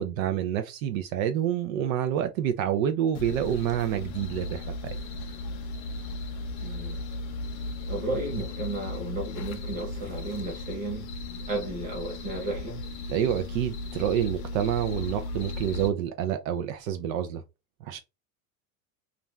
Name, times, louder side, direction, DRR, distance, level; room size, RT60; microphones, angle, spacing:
voice 1, 0.0-5.0 13.1-17.4 17.8-18.0, right 10 dB, 70° right, 0.5 m, -28 dB
sound 1, 3.1-15.9, left 2 dB, 40° left, 0.6 m, -36 dB
voice 2, 6.6-7.0 7.9-11.1 11.5-12.8, right 2 dB, 20° right, 0.9 m, -33 dB
2.5 x 2.2 x 3.1 m
supercardioid pair, 175°, 42 cm